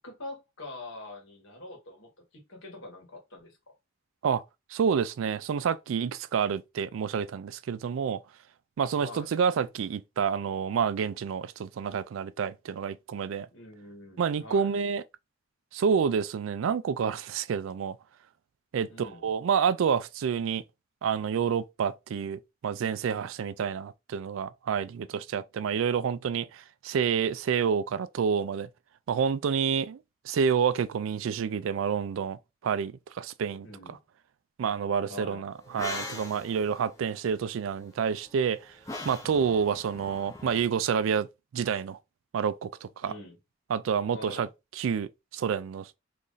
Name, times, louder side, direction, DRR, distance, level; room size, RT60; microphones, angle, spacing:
voice 1, 0.0-3.6 9.0-9.3 13.5-14.7 18.9-19.3 33.6-34.0 35.1-35.5 43.0-43.4 44.1-44.4, left 2 dB, 75° left, 1.5 m, -44 dB
voice 2, 4.7-8.2 8.8-13.5 14.2-15.0 15.7-18.0 18.7-20.6 21.0-28.7 29.1-34.0 34.6-38.8 39.1-41.3 41.5-42.0 42.3-43.1 43.7-44.5 44.7-45.9, right 7 dB, 75° right, 0.3 m, -28 dB
sound 1, 35.6-40.6, left 2 dB, 15° left, 0.6 m, -42 dB
3.0 x 2.6 x 3.8 m
head